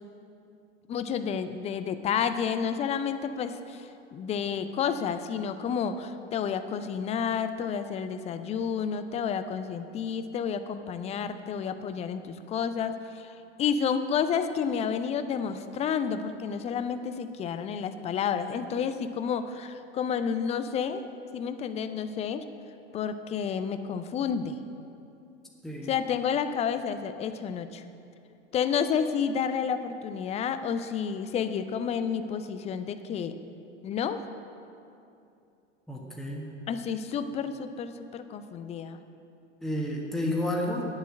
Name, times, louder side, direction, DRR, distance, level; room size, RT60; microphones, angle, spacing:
voice 1, 0.9-21.0 21.3-22.4 22.9-24.6 25.9-27.8 28.5-33.3 33.8-34.2 36.7-39.0, left 7 dB, 20° left, 11 dB, 0.4 m, -30 dB
voice 2, 35.9-36.5 39.6-40.8, left 1 dB, ahead, -2 dB, 1.4 m, -31 dB
10.5 x 7.3 x 7.5 m, 2.7 s
figure-of-eight pair, 85°, 37 cm